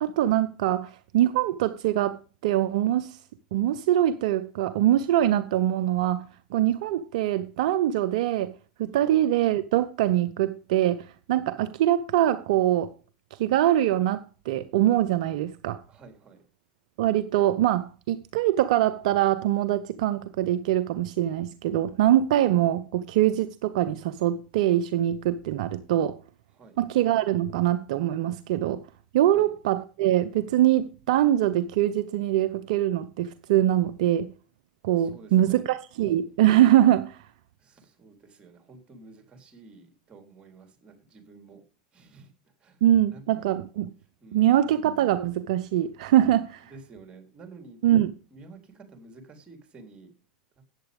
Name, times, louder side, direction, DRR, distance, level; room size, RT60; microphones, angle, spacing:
voice 1, 0.0-3.2 3.5-8.5 8.8-12.9 13.4-15.8 17.0-26.2 26.8-28.8 29.1-34.3 34.8-37.2 42.8-43.9 44.3-46.7 47.8-48.1, right 12 dB, 60° right, 0.6 m, -23 dB
voice 2, 15.9-16.4 26.5-26.8 29.3-29.5 35.0-35.7 37.6-41.6 41.9-42.3 42.6-42.8 43.1-43.2 44.2-44.7 46.7-47.8 48.3-50.1 50.6-50.7, right 3 dB, 25° right, 3.8 m, -50 dB
14.0 x 9.0 x 3.6 m
hypercardioid pair, 90°, 4 cm